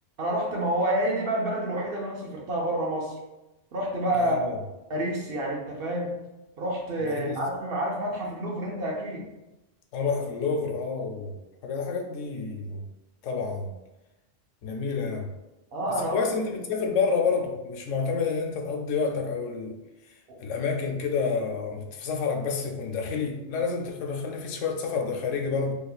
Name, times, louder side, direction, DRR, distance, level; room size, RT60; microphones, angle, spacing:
voice 1, 0.2-3.2 3.7-4.4 4.9-6.2 6.6-9.3 15.7-16.2 20.3-20.4, right 1 dB, 60° right, -1 dB, 0.8 m, -28 dB
voice 2, 4.2-4.6 7.0-7.4 9.9-11.3 11.6-12.8 13.2-13.7 14.6-15.3 16.1-19.7 20.4-25.7, left 5 dB, 80° left, 2 dB, 0.9 m, -29 dB
4.0 x 2.8 x 2.3 m, 1.0 s
omnidirectional pair, 1.3 m